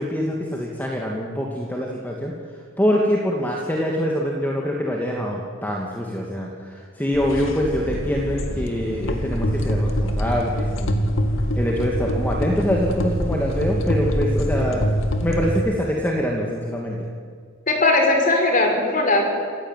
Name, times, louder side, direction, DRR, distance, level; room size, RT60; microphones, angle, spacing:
voice 1, 0.0-2.3 2.8-11.0 11.6-14.9 15.2-17.1, equal, 10° left, -1 dB, 2.4 m, -24 dB
sound 1, 7.1-15.6, equal, 85° left, 2.3 m, -24 dB
voice 2, 17.7-19.4, left 2 dB, 45° left, 3 dB, 5.2 m, -19 dB
27.5 x 16.0 x 9.4 m, 2.1 s
head